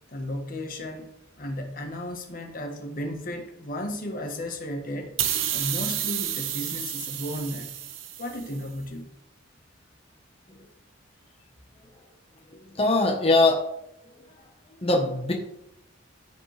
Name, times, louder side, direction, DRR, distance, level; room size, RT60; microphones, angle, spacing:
voice 1, 0.1-1.1 1.4-5.1 5.5-7.7 8.2-9.1, left 1 dB, 45° left, 3 dB, 1.4 m, -34 dB
sound 1, 5.2-8.6, right 10 dB, 85° right, 1.0 m, -30 dB
voice 2, 12.5-13.7 14.8-15.3, left 2 dB, 30° left, 0 dB, 1.3 m, -22 dB
15.0 x 5.2 x 3.5 m, 0.81 s
head